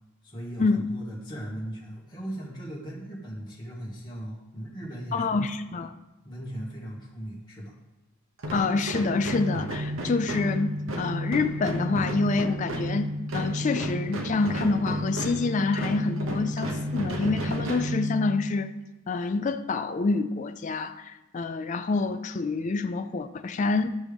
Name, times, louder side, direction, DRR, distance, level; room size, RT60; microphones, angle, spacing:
voice 1, 0.2-5.4 6.2-7.7, equal, 20° left, -7 dB, 1.9 m, -38 dB
voice 2, 5.1-5.9 8.5-18.7 19.1-24.0, left 3 dB, 35° left, 8 dB, 0.3 m, -27 dB
sound 1, 8.4-18.6, equal, 70° right, 1.0 m, -31 dB
12.0 x 6.1 x 3.5 m, 1.0 s
head